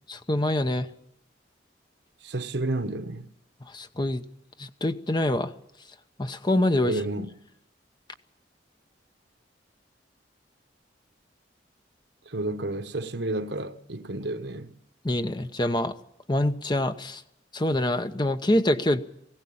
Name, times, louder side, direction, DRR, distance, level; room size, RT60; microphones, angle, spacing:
voice 1, 0.1-0.9 3.7-4.2 4.6-5.5 6.2-7.0 15.0-15.9 16.3-17.2 17.5-19.0, left 1 dB, 25° left, 0.9 m, -25 dB
voice 2, 2.2-3.2 6.8-7.3 12.3-14.7, right 2 dB, 70° right, 1.2 m, -31 dB
19.0 x 16.5 x 8.6 m
head